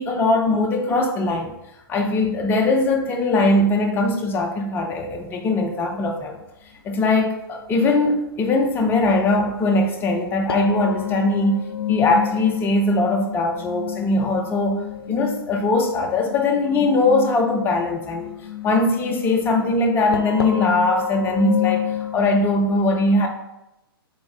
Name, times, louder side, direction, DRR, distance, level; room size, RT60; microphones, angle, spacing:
voice 1, 0.0-1.5 1.9-6.4 6.8-14.8 15.1-18.4 18.6-21.8 22.1-23.3, left 2 dB, 15° left, 2 dB, 0.5 m, -20 dB
sound 1, 5.1-5.2 7.3-7.4 10.5-22.4, left 10 dB, 80° left, 0.5 m, -29 dB
3.5 x 2.5 x 3.7 m, 0.89 s
figure-of-eight pair, 110°, 13 cm